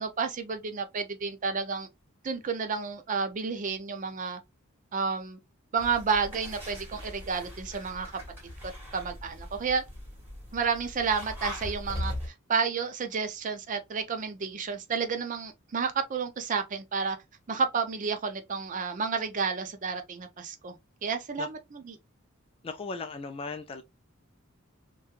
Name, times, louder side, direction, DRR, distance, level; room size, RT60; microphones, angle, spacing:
voice 1, 0.0-1.9 2.2-4.4 4.9-5.4 5.7-8.1 8.6-9.8 10.5-12.1 12.5-17.2 17.5-20.8 21.0-22.0, right 5 dB, 40° right, 0.4 m, -31 dB
sound 1, 5.8-12.3, left 1 dB, 10° right, 1.4 m, -40 dB
voice 2, 22.6-23.8, left 4 dB, 25° left, 0.3 m, -37 dB
3.0 x 2.3 x 2.4 m
head